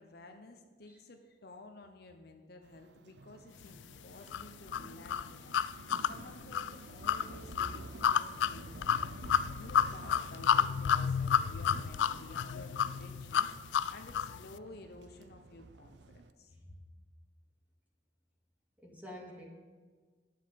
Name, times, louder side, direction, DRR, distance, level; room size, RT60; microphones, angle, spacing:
voice 1, 0.0-9.0 9.5-16.6, left 2 dB, 60° left, 5 dB, 0.9 m, -53 dB
sound 1, 2.6-16.3, right 3 dB, 70° right, 0.6 m, -51 dB
sound 2, 4.3-14.4, left 8 dB, 90° left, 0.3 m, -31 dB
voice 2, 16.5-16.8 18.8-19.4, left 1 dB, 10° right, -2 dB, 2.1 m, -49 dB
10.0 x 7.5 x 5.3 m, 1.6 s
head